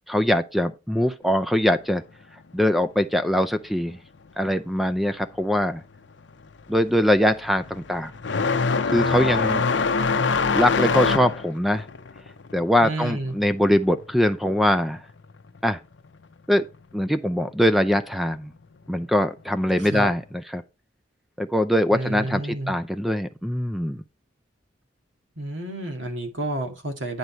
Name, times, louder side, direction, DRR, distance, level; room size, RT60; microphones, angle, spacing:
voice 1, 0.1-2.0 2.5-4.0 4.4-5.8 6.7-8.1 8.9-9.6 10.5-11.8 12.5-15.0 15.6-15.8 16.5-16.6 16.9-18.5 18.9-20.6 21.4-24.0, equal, ahead, 0.4 m, -22 dB
sound 1, 5.7-6.0 6.3-14.6 14.9-15.9 16.9-17.0 17.8-17.9 19.7-19.8, left 4 dB, 70° left, 0.7 m, -25 dB
voice 2, 12.8-13.3 19.8-20.1 21.9-22.7 25.4-27.2, right 2 dB, 80° right, 2.0 m, -30 dB
9.8 x 5.1 x 4.5 m
head